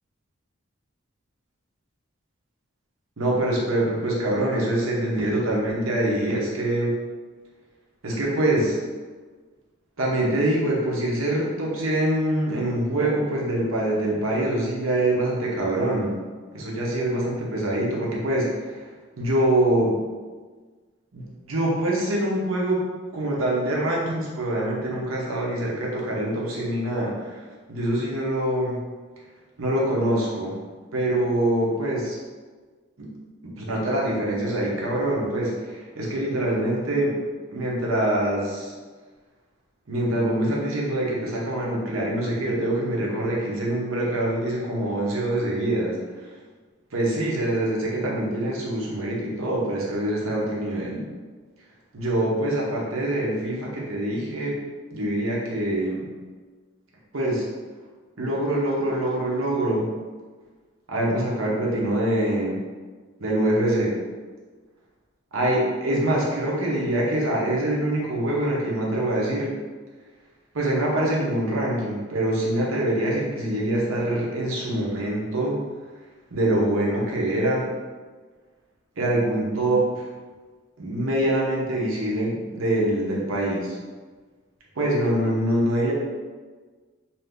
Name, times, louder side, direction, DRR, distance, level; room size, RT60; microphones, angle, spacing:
voice 1, 3.2-6.9 8.0-8.8 10.0-16.2 16.5-18.8 19.2-20.0 21.1-28.8 29.6-30.6 30.9-32.2 33.0-33.1 33.4-37.2 37.5-38.7 39.9-46.0 46.9-51.0 51.9-54.6 54.9-56.1 57.1-57.5 58.2-59.9 60.9-62.6 63.2-64.0 65.3-69.5 70.5-75.6 76.3-77.7 79.0-80.1 80.8-83.8 84.7-85.9, right 1 dB, 85° right, -3 dB, 0.8 m, -24 dB
2.7 x 2.5 x 3.5 m, 1.4 s
head